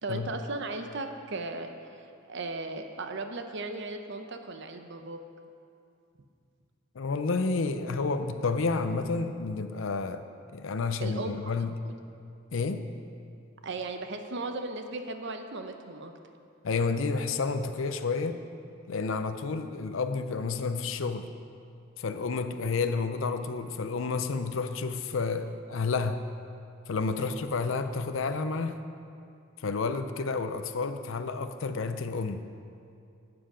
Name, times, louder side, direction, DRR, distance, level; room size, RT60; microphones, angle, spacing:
voice 1, 0.0-5.2 11.0-11.4 11.8-11.9 13.6-16.1 27.2-27.4, right 2 dB, 60° right, 6 dB, 0.8 m, -37 dB
voice 2, 6.9-10.2 10.5-11.7 12.5-12.9 16.6-18.4 18.9-21.3 22.0-26.2 26.9-28.8 29.6-32.4, left 4 dB, 70° left, 9 dB, 0.5 m, -30 dB
13.0 x 7.8 x 5.0 m, 2.5 s
head